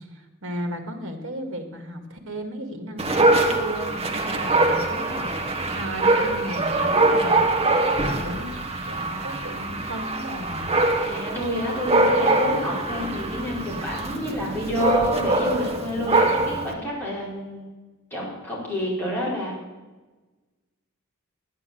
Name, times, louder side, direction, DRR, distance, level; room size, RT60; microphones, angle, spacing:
voice 1, 0.1-5.3 5.8-8.5 8.9-10.8, right 1 dB, 60° right, 5 dB, 2.2 m, -35 dB
Dog, 3.0-16.7, right 2 dB, 30° right, 1.3 m, -23 dB
voice 2, 11.0-17.7 18.1-19.6, equal, 10° left, -5 dB, 4.6 m, -29 dB
11.0 x 10.0 x 7.7 m, 1.2 s
head